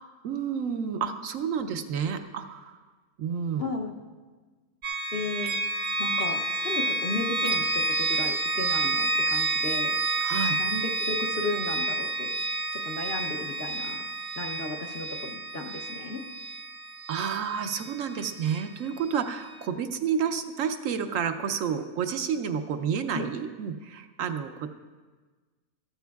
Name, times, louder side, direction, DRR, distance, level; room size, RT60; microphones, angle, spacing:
voice 1, 0.0-2.8 3.2-3.7 10.2-10.6 17.1-24.7, right 7 dB, 70° right, 8 dB, 1.0 m, -30 dB
voice 2, 3.6-3.9 5.1-5.6 6.0-10.0 10.6-12.4 12.7-14.0 14.4-16.2 23.1-23.3, left 3 dB, 50° left, 2 dB, 0.9 m, -34 dB
sound 1, 4.8-18.6, right 2 dB, 45° right, 0.7 m, -29 dB
14.5 x 13.5 x 2.3 m, 1.4 s
omnidirectional pair, 1.5 m